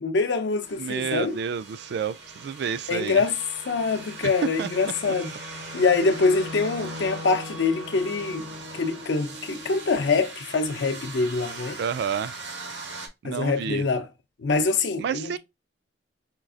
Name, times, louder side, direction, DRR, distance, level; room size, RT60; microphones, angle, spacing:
voice 1, 0.0-1.4 2.9-3.4 3.7-5.3 5.7-8.5 8.7-11.8 13.2-14.1 14.4-15.4, left 4 dB, 75° left, 0.5 m, -24 dB
sound 1, 0.6-13.1, right 1 dB, 80° right, 1.1 m, -39 dB
voice 2, 0.8-3.3 4.2-4.3 4.6-4.7 11.8-12.3 13.2-13.8 15.0-15.4, right 7 dB, 65° right, 0.3 m, -30 dB
4.4 x 2.3 x 2.4 m
head